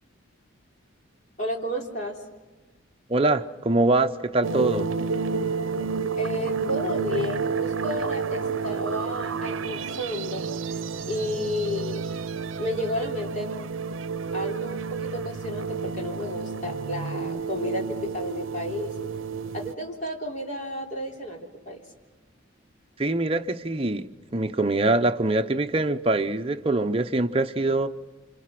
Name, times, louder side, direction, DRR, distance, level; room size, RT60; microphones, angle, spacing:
voice 1, 1.4-2.2 6.2-10.4 11.1-12.0 12.6-13.5 14.3-18.9 19.5-21.8, left 1 dB, 40° left, 3.6 m, -32 dB
voice 2, 3.1-4.9 23.0-27.9, right 2 dB, 30° right, 0.8 m, -24 dB
sound 1, 4.4-19.7, right 5 dB, 85° right, 0.7 m, -30 dB
29.5 x 26.5 x 6.0 m
head